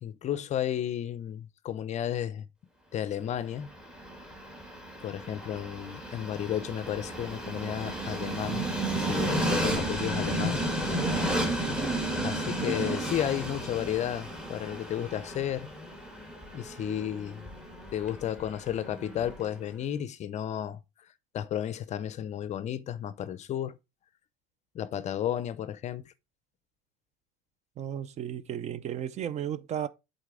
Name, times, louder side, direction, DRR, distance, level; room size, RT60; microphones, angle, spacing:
voice 1, 0.0-2.5 2.9-3.7 5.0-8.7 8.9-10.7 12.2-15.7 16.5-17.4 17.9-20.8 21.3-23.8 24.7-26.1, left 10 dB, 35° left, 0.6 m, -33 dB
Train, 3.5-19.6, right 1 dB, 5° right, 1.5 m, -33 dB
voice 2, 10.9-11.3 27.8-29.9, right 10 dB, 35° right, 0.5 m, -34 dB
7.9 x 4.2 x 3.6 m
supercardioid pair, 125°, 21 cm